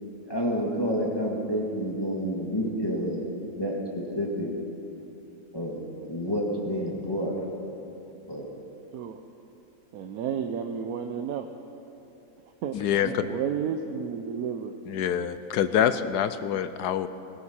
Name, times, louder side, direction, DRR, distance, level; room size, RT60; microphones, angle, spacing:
voice 1, 0.3-4.5 5.5-5.8 6.1-7.4 8.3-8.5 13.0-13.1, equal, 15° left, -3 dB, 1.8 m, -29 dB
voice 2, 9.9-11.5 12.6-12.8 13.3-14.7, right 7 dB, 70° right, 5 dB, 1.1 m, -31 dB
voice 3, 12.7-13.2 14.9-17.1, left 9 dB, 75° left, 11 dB, 1.2 m, -26 dB
21.5 x 14.5 x 4.3 m, 2.8 s
omnidirectional pair, 1.7 m